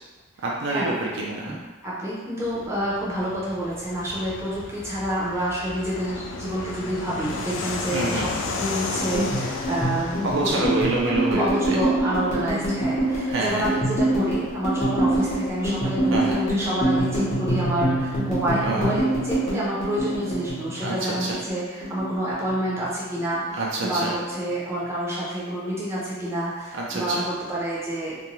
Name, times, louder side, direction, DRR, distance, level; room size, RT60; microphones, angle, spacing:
voice 1, 0.4-1.5 7.9-8.3 10.2-11.8 13.3-13.7 16.1-16.4 18.6-19.0 20.8-21.4 23.6-24.1 26.7-27.2, right 2 dB, 60° right, -3 dB, 0.4 m, -26 dB
voice 2, 1.8-10.3 10.5-10.8 11.3-28.1, right 1 dB, 15° right, -8 dB, 0.6 m, -28 dB
Fixed-wing aircraft airplane, 2.4-18.6, left 3 dB, 60° left, 0.3 m, -36 dB
sound 1, 9.0-21.6 21.8-22.9 23.2-23.5 23.8-24.5, right 1 dB, 30° left, 0.7 m, -25 dB
2.6 x 2.1 x 3.0 m, 1.2 s
head